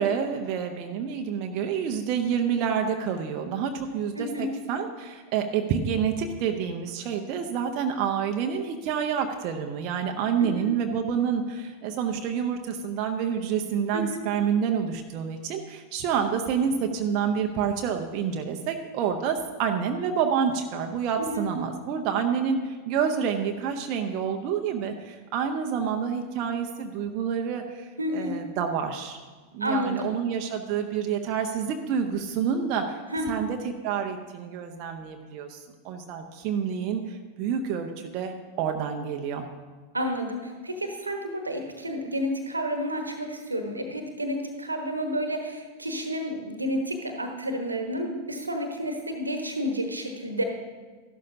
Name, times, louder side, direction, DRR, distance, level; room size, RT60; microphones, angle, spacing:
voice 1, 0.0-29.2 29.5-33.0 33.3-39.4, right 7 dB, 40° right, 4 dB, 0.7 m, -28 dB
voice 2, 4.2-4.5 10.4-10.7 13.9-14.2 21.2-21.4 28.0-28.4 29.6-30.1 33.1-33.4 39.9-50.4, equal, 80° right, 5 dB, 1.2 m, -30 dB
13.5 x 11.5 x 2.8 m, 1.4 s
figure-of-eight pair, 90°, 0 cm